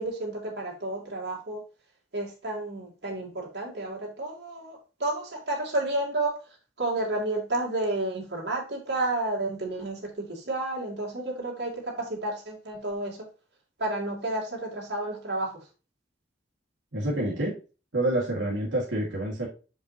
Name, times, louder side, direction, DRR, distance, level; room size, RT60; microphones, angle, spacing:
voice 1, 0.0-1.6 2.1-13.3 13.8-15.6, right 2 dB, 65° right, -3 dB, 2.7 m, -31 dB
voice 2, 16.9-17.5 17.9-19.5, right 1 dB, 85° right, -4 dB, 2.0 m, -27 dB
6.8 x 5.5 x 2.8 m, 0.33 s
head